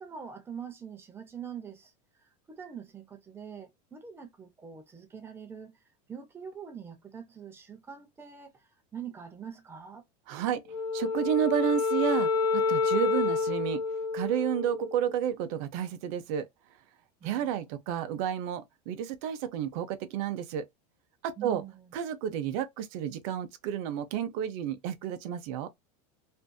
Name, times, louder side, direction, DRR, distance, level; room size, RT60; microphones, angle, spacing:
voice 1, 0.0-1.9 2.5-5.8 6.1-8.5 8.9-10.0 17.2-17.5 21.4-21.9, right 7 dB, 10° right, 0.6 m, -44 dB
voice 2, 10.3-13.8 14.1-16.5 17.2-20.6 21.2-21.6 21.9-25.7, right 9 dB, 55° right, 0.6 m, -31 dB
Wind instrument woodwind instrument, 10.7-15.1, left 4 dB, 80° left, 0.8 m, -28 dB
2.6 x 2.5 x 2.2 m
supercardioid pair, 150°, 21 cm